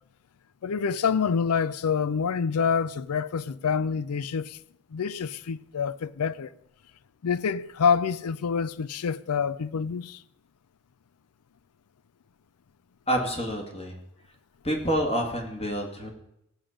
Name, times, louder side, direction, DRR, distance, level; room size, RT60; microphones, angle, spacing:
voice 1, 0.6-4.6 4.9-6.5 7.2-10.2, left 6 dB, 85° left, 0.5 m, -27 dB
voice 2, 13.1-14.0 14.6-16.1, equal, 30° left, 2.1 m, -28 dB
17.0 x 7.3 x 5.1 m
head